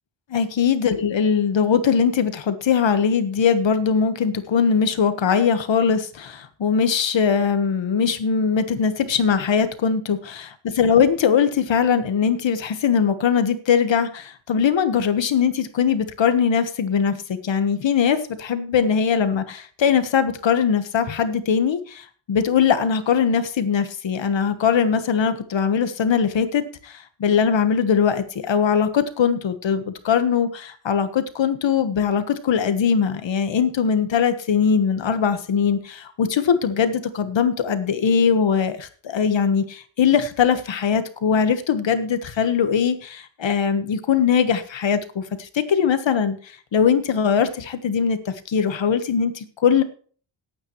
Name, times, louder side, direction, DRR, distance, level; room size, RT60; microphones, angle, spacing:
voice 1, 0.3-49.8, left 7 dB, 60° left, 10 dB, 1.4 m, -21 dB
17.5 x 9.0 x 3.1 m, 0.43 s
wide cardioid pair, 140°, 50 cm